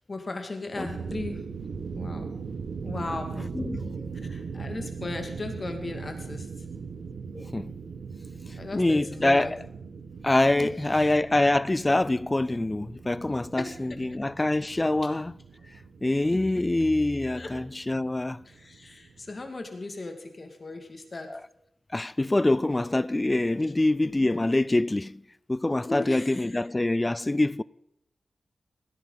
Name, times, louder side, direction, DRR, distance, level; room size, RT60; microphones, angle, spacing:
voice 1, 0.1-1.4 2.0-2.3 2.8-3.4 4.2-6.5 8.6-9.5 10.5-11.1 13.6-13.8 16.3-16.6 17.3-17.5 18.5-21.4 24.0-24.4 25.9-26.6, left 2 dB, 45° left, 2.2 m, -37 dB
sound 1, 0.7-19.5, right 5 dB, 85° right, 1.2 m, -40 dB
voice 2, 3.5-4.0 7.3-7.7 8.7-9.6 10.2-15.3 16.0-18.4 21.3-21.4 21.9-25.2 25.5-27.6, left 2 dB, 25° left, 0.3 m, -25 dB
17.0 x 10.5 x 4.0 m
cardioid pair, 50°, 0 cm